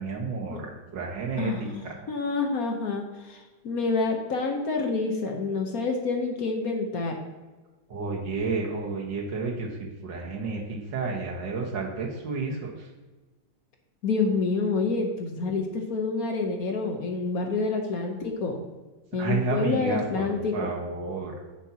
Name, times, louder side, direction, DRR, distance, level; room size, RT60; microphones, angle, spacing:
voice 1, 0.0-2.1 7.9-12.9 19.2-21.4, right 4 dB, 75° right, 0 dB, 2.1 m, -31 dB
voice 2, 1.4-7.2 14.0-18.6 19.1-20.7, left 4 dB, 55° left, 3 dB, 1.3 m, -28 dB
9.8 x 7.1 x 2.9 m, 1.2 s
omnidirectional pair, 2.0 m